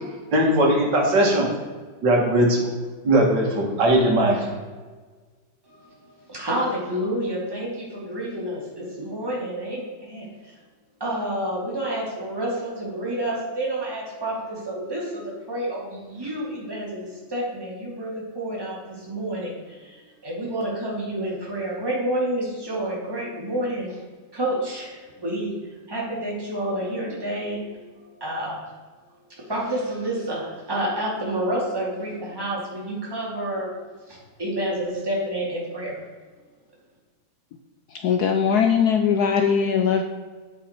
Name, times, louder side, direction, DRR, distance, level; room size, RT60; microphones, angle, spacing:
voice 1, 0.3-1.5 2.0-2.7 3.0-4.5, right 1 dB, 70° right, -1 dB, 2.4 m, -19 dB
voice 2, 6.3-8.6 9.0-10.5 11.0-24.0 24.3-28.6 29.3-33.7 34.1-36.0, right 1 dB, 10° right, -5 dB, 2.4 m, -29 dB
voice 3, 38.0-40.0, left 7 dB, 70° left, 5 dB, 1.1 m, -20 dB
8.5 x 6.2 x 4.5 m, 1.4 s
omnidirectional pair, 2.0 m